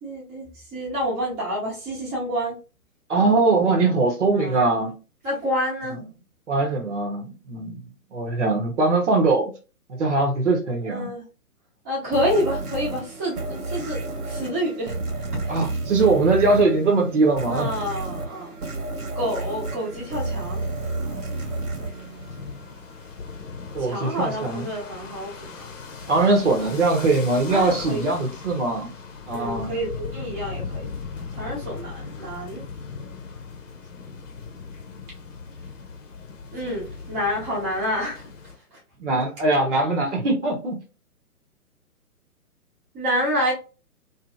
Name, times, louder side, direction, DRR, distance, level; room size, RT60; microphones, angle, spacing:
voice 1, 0.0-2.6 4.3-4.6 5.2-6.0 10.9-11.2 11.8-15.0 15.4-15.5 17.5-18.6 19.1-20.6 23.8-25.7 27.5-28.0 29.3-30.9 31.3-32.6 36.5-38.2 42.9-43.5, equal, 15° right, 0.8 m, -28 dB
voice 2, 3.1-5.0 6.5-7.8 8.1-9.5 9.9-11.1 15.5-17.7 23.7-24.7 26.1-28.9 29.3-29.7 39.0-40.8, right 3 dB, 50° right, 0.9 m, -21 dB
sound 1, 12.1-22.9, right 2 dB, 75° right, 1.2 m, -31 dB
sound 2, 19.9-38.6, left 5 dB, 55° left, 0.8 m, -39 dB
2.7 x 2.6 x 2.3 m
figure-of-eight pair, 130°, 46 cm